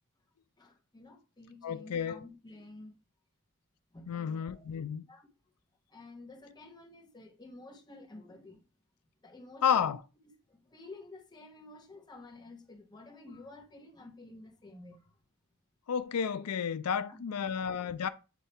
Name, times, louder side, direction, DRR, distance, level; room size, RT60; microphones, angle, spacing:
voice 1, 0.6-2.9 3.9-4.6 5.1-5.3 5.9-8.6 9.2-10.0 10.5-15.2 16.9-17.5, left 2 dB, 20° left, 1.0 m, -51 dB
voice 2, 1.6-2.2 4.1-5.0 9.6-10.0 15.9-18.1, left 7 dB, 90° left, 0.4 m, -31 dB
8.2 x 2.8 x 4.4 m
head